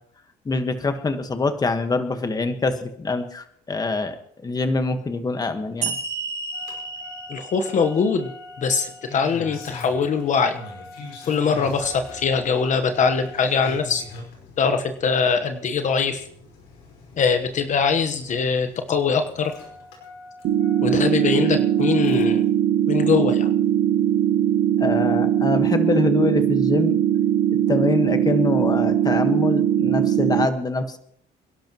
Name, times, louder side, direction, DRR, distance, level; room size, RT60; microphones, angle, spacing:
voice 1, 0.4-4.2 4.4-6.0 24.8-27.0 27.7-31.0, left 3 dB, 20° left, 8 dB, 1.5 m, -24 dB
sound 1, 5.8-9.2, right 4 dB, 45° right, 6.2 m, -33 dB
Engine starting, 6.5-22.5 23.7-23.8, left 3 dB, 90° left, 5.2 m, -42 dB
voice 2, 7.3-8.3 8.6-10.5 11.3-14.0 14.6-16.2 17.2-19.5 20.8-22.5 22.9-23.5, left 5 dB, 45° left, 7 dB, 1.2 m, -22 dB
sound 2, 20.4-30.5, right 10 dB, 75° right, 0.9 m, -20 dB
27.5 x 11.5 x 3.1 m, 0.67 s
cardioid pair, 110°, 17 cm